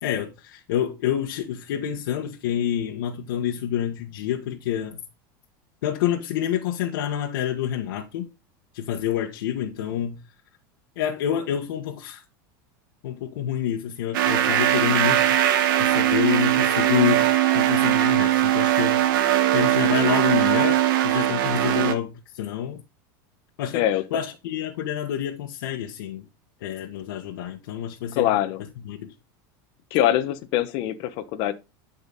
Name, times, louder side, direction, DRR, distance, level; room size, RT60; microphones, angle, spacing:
voice 1, 0.0-5.0 5.8-8.3 8.7-10.2 11.0-12.2 13.0-15.3 15.8-19.1 19.5-22.8 23.6-23.8 24.1-26.2 26.6-28.3 28.8-29.1, left 10 dB, 85° left, 1.7 m, -27 dB
sound 1, 14.1-21.9, right 12 dB, 75° right, 1.8 m, -20 dB
voice 2, 28.2-28.6 29.9-31.5, left 12 dB, 55° left, 1.3 m, -23 dB
12.0 x 5.6 x 4.2 m
supercardioid pair, 140°, 11 cm